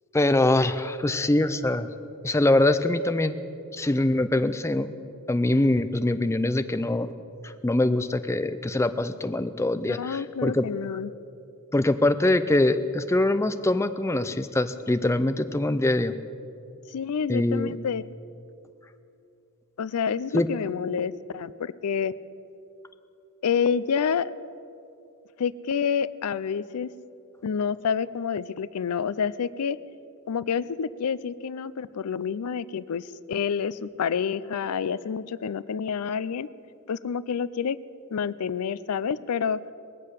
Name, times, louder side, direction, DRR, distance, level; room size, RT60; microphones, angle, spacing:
voice 1, 0.1-1.9 2.2-3.4 3.7-4.9 5.3-7.1 7.4-10.6 11.7-16.1 17.3-17.8 20.3-20.5, left 2 dB, 10° left, 11 dB, 0.4 m, -23 dB
voice 2, 9.9-11.1 16.9-18.0 19.8-22.1 23.4-24.3 25.4-26.9 27.4-29.8 30.3-36.5 36.9-37.8 38.1-39.6, left 7 dB, 80° left, 17 dB, 0.4 m, -28 dB
21.0 x 7.6 x 6.5 m, 2.6 s
head